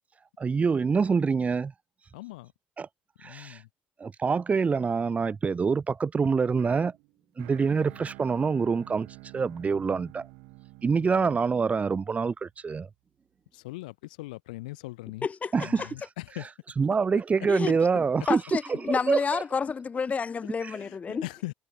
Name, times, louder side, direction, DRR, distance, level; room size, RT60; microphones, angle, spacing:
voice 1, 0.4-1.7 2.8-2.9 3.2-3.6 4.0-6.9 7.4-9.1 9.3-10.3 10.8-12.9 15.5-15.8 16.8-18.4 18.9-19.2, right 5 dB, 30° right, 2.6 m, -25 dB
voice 2, 2.1-2.5 3.2-3.7 7.7-8.0 11.0-11.3 13.5-15.3 15.6-16.5 20.7-21.5, left 20 dB, 90° left, 5.2 m, -40 dB
sound 1, 6.2-12.3, right 30 dB, 80° right, 4.8 m, -49 dB
voice 3, 15.2-15.9 17.5-21.3, left 5 dB, 35° left, 1.8 m, -30 dB
hypercardioid pair, 70°, 4 cm